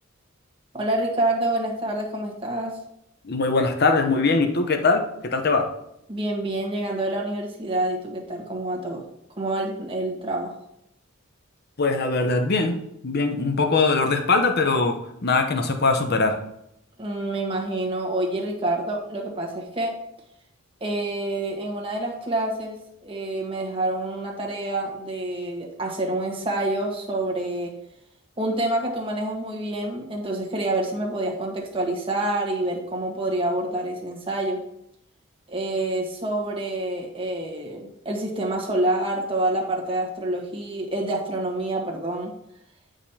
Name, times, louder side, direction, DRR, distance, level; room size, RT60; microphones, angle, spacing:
voice 1, 0.7-2.8 6.1-9.0 9.4-10.5 17.0-19.9 20.8-27.7 28.4-34.6 35.5-42.3, right 1 dB, 25° right, -1 dB, 1.3 m, -27 dB
voice 2, 3.2-5.7 11.8-16.4, left 3 dB, 50° left, 5 dB, 0.8 m, -22 dB
9.5 x 5.1 x 2.8 m, 0.78 s
head